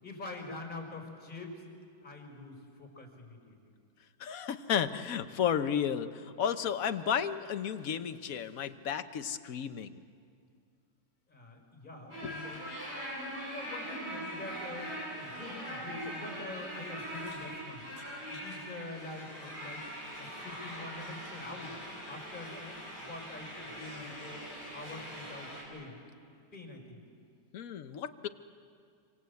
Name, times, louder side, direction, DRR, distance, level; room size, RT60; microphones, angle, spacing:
voice 1, 0.0-1.6 2.0-3.6 11.3-12.6 13.1-17.8 18.3-19.8 20.2-24.4 24.7-26.0 26.5-27.0, left 2 dB, 30° left, 3 dB, 5.4 m, -45 dB
voice 2, 4.2-9.9 12.2-12.4 27.5-28.3, left 8 dB, 60° left, 9 dB, 1.3 m, -33 dB
sound 1, 12.1-25.6, equal, 40° right, 8.4 m, -42 dB
26.0 x 26.0 x 8.4 m, 2.3 s
omnidirectional pair, 1.8 m